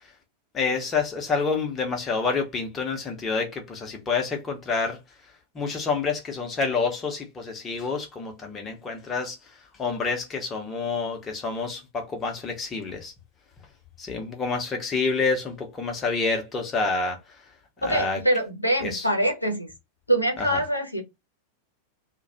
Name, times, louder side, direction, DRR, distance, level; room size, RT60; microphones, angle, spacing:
voice 1, 0.5-5.0 5.6-9.4 9.8-13.1 14.0-17.2 17.8-18.2 18.8-19.0, left 4 dB, 20° left, 0.7 m, -28 dB
voice 2, 17.8-19.7 20.1-21.0, right 1 dB, 85° left, 0.6 m, -24 dB
2.3 x 2.1 x 2.7 m
figure-of-eight pair, 90°, 0 cm